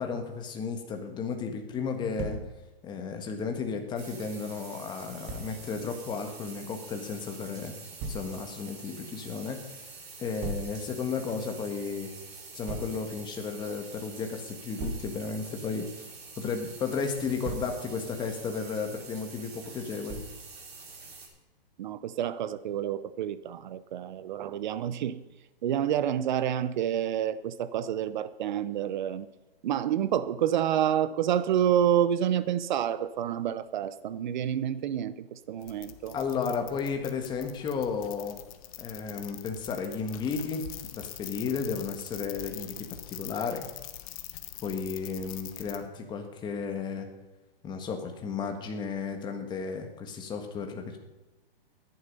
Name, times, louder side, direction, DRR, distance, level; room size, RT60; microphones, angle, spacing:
voice 1, 0.0-2.4 2.8-7.7 8.0-9.6 10.2-12.1 12.5-15.9 16.4-20.2 36.1-38.4 38.8-40.6 40.9-43.7 44.6-47.1 47.6-51.0, left 5 dB, 15° left, 4 dB, 1.5 m, -33 dB
Thump thud, 2.2-2.5 5.3-5.5 8.0-8.3 10.4-10.7 12.7-12.9 14.8-15.1 17.2-17.8 20.1-20.4, right 3 dB, 30° right, 1.8 m, -36 dB
sound 1, 4.0-21.3, right 4 dB, 85° right, 4.7 m, -47 dB
voice 2, 21.8-25.2 25.6-29.3 29.6-36.2, right 10 dB, 50° right, 15 dB, 0.8 m, -28 dB
sound 2, 35.6-45.8, left 14 dB, 35° left, 1.1 m, -44 dB
14.5 x 10.5 x 5.4 m, 1.1 s
hypercardioid pair, 150°, 30 cm